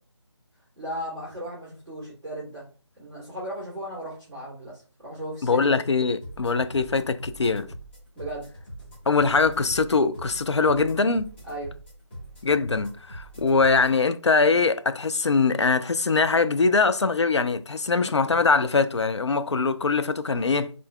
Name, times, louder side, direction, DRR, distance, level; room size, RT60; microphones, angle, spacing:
voice 1, 0.7-2.6 2.9-5.7 8.1-8.5 11.5-11.7, right 1 dB, 5° left, 1.5 m, -36 dB
voice 2, 5.4-7.7 9.1-11.3 12.4-20.7, left 4 dB, 65° left, 0.4 m, -22 dB
sound 1, 6.2-14.0, right 1 dB, 20° left, 1.6 m, -43 dB
3.8 x 3.6 x 2.2 m
figure-of-eight pair, 160°, 16 cm